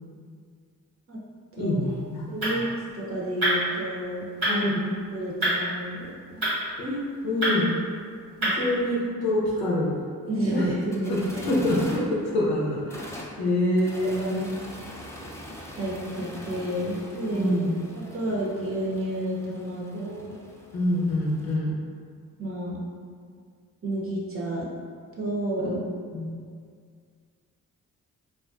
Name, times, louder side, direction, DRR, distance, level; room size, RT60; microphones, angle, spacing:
voice 1, 1.6-2.6 4.5-4.9 6.8-7.7 8.5-9.9 10.5-10.7 11.1-11.2 11.5-14.4 17.3-17.8 20.7-21.7 26.1-26.3, left 1 dB, 85° left, -5 dB, 0.6 m, -26 dB
sound 1, 1.9-9.1, right 1 dB, 85° right, 1.2 m, -30 dB
voice 2, 2.3-2.7 2.9-4.7 5.1-6.5 8.4-8.5 10.3-11.6 14.0-14.3 15.8-17.5 18.1-20.4 22.4-22.8 23.8-24.7 25.2-25.8, right 1 dB, 35° right, -5 dB, 0.6 m, -30 dB
sound 2, 6.3-6.4 6.6-6.7 9.1-9.2 10.5-21.6, left 1 dB, 10° left, 0.4 m, -43 dB
2.4 x 2.2 x 2.4 m, 2.1 s
supercardioid pair, 45°, 37 cm